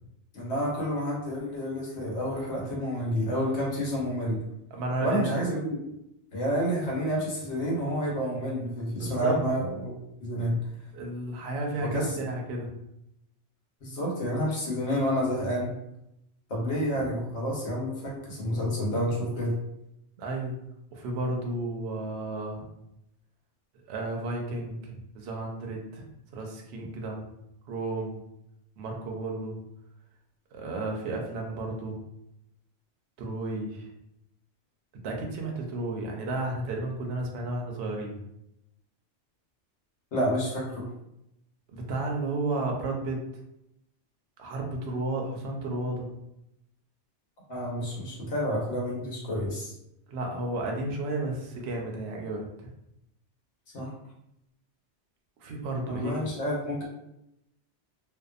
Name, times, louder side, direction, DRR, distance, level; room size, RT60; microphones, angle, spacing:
voice 1, 0.3-4.4 5.0-5.8 6.3-9.9 10.2-10.5 11.8-12.3 13.8-15.7 16.5-19.5 40.1-40.9 47.5-49.7 53.7-53.9 55.8-56.9, equal, 75° left, -4 dB, 1.2 m, -29 dB
voice 2, 4.7-5.4 9.0-9.4 10.9-12.7 17.0-17.1 20.2-20.6 20.9-22.6 23.9-26.1 26.3-27.3 27.7-28.2 28.8-29.6 30.5-32.0 33.2-33.9 35.0-38.2 41.7-43.2 44.4-46.1 50.1-52.5 55.4-56.3, right 2 dB, 70° right, 0 dB, 0.8 m, -32 dB
2.6 x 2.2 x 2.4 m, 0.82 s
omnidirectional pair, 1.2 m